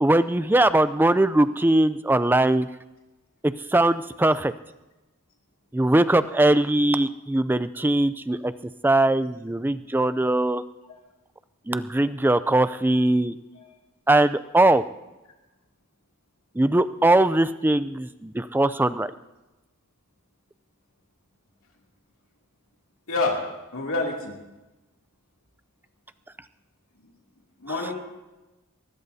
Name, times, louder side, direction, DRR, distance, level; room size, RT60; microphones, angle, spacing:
voice 1, 0.0-2.7 3.4-4.5 5.7-8.5 8.8-10.6 11.7-13.4 14.1-14.8 16.6-19.1, right 1 dB, 10° right, 13 dB, 0.4 m, -21 dB
voice 2, 23.1-23.4 23.7-24.3 27.6-28.0, left 3 dB, 70° left, -1 dB, 2.7 m, -27 dB
21.5 x 20.0 x 2.8 m, 1.1 s
head